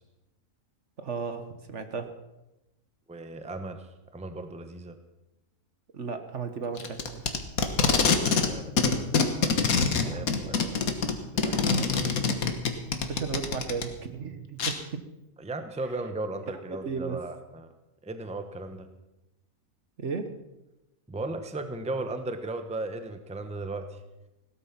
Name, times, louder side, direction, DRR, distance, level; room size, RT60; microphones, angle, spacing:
voice 1, 1.0-2.1 5.9-7.4 10.0-10.5 13.1-15.0 16.7-17.2 20.0-20.3, right 5 dB, 60° right, 8 dB, 1.5 m, -35 dB
voice 2, 3.1-5.0 7.9-9.0 9.4-10.8 11.4-12.2 15.4-17.7 18.0-18.9 21.1-24.0, right 2 dB, 5° right, 8 dB, 0.9 m, -37 dB
Packing tape duct tape, 6.8-8.5 8.8-13.8 14.6-14.7, left 5 dB, 90° left, 1.8 m, -24 dB
17.0 x 12.5 x 5.9 m, 0.96 s
omnidirectional pair, 1.4 m